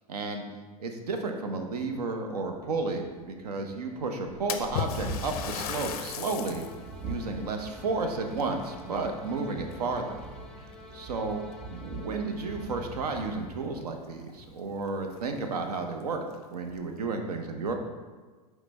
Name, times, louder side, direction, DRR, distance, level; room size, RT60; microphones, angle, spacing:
voice 1, 0.1-0.4 0.8-6.6 7.0-10.2 10.9-11.4 11.7-17.7, right 3 dB, 85° right, 5 dB, 0.6 m, -32 dB
Thunderstorm, 1.9-2.0 2.3-15.9, right 2 dB, 25° right, 1.1 m, -44 dB
sound 1, 3.3-13.9, left 3 dB, 5° left, 0.5 m, -51 dB
Splash splatter, 4.5-6.8 7.3-7.4 8.3-9.3 9.7-10.2 11.0-11.1 11.5-11.6 13.8-13.9 14.2-14.3 14.9-15.0 15.4-15.5 16.2-16.8, left 8 dB, 75° left, 0.4 m, -36 dB
4.9 x 3.1 x 3.2 m, 1.4 s
hypercardioid pair, 100°, 19 cm